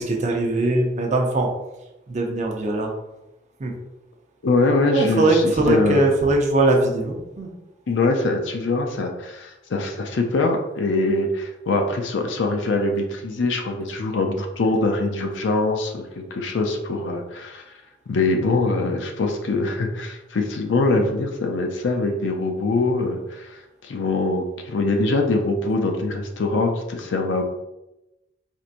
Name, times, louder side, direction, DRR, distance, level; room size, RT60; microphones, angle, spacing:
voice 1, 0.0-1.5 2.1-2.9 3.6-3.7 4.9-7.5, right 2 dB, 40° right, 1 dB, 0.6 m, -21 dB
voice 2, 4.4-6.0 7.9-17.7 18.1-27.4, left 2 dB, 70° left, 3 dB, 0.4 m, -23 dB
4.3 x 2.6 x 2.5 m, 0.94 s
head